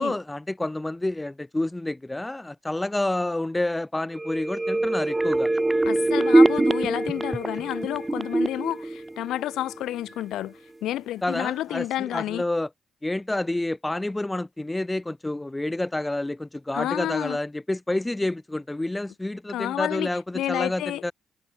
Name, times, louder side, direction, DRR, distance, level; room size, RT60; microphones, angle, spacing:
voice 1, 0.0-5.5 11.2-12.7 13.0-21.1, left 1 dB, 10° left, 3.3 m, -29 dB
sound 1, 4.1-9.8 10.2-10.3, right 2 dB, 15° right, 1.7 m, -23 dB
voice 2, 5.8-12.4 16.7-17.4 19.5-20.1 20.3-21.0, left 13 dB, 85° left, 1.7 m, -30 dB
cardioid pair, 90°, 0 cm